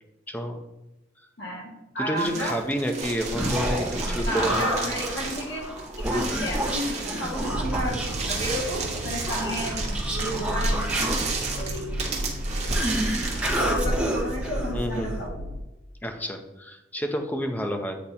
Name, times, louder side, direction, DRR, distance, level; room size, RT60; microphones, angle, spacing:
voice 1, 0.3-0.6 2.0-4.8 14.7-15.1 16.0-18.0, equal, 10° left, 5 dB, 0.6 m, -29 dB
voice 2, 1.4-2.6 4.2-5.7 6.0-6.9 7.2-8.0 8.3-10.8 11.6-12.3 13.6-15.4, equal, 65° left, -3 dB, 1.8 m, -32 dB
sound 1, 2.2-13.6, right 4 dB, 40° right, 1.1 m, -34 dB
Human voice, 3.0-15.3, equal, 5° right, 1.2 m, -29 dB
sound 2, 7.3-15.6, right 1 dB, 55° right, 0.5 m, -33 dB
8.4 x 2.9 x 4.1 m, 0.97 s
head